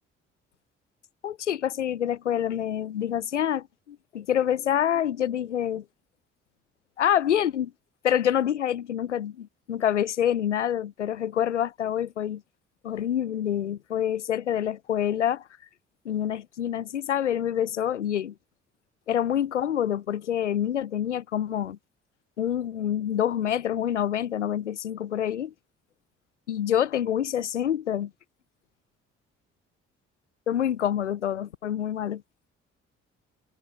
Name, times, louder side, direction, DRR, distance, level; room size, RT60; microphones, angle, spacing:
voice 1, 1.2-5.8 7.0-7.7 8.0-12.4 12.8-15.4 16.0-18.3 19.1-21.8 22.4-25.5 26.5-28.1 30.5-32.2, left 10 dB, 85° left, 0.8 m, -27 dB
figure-of-eight pair, 45°, 35 cm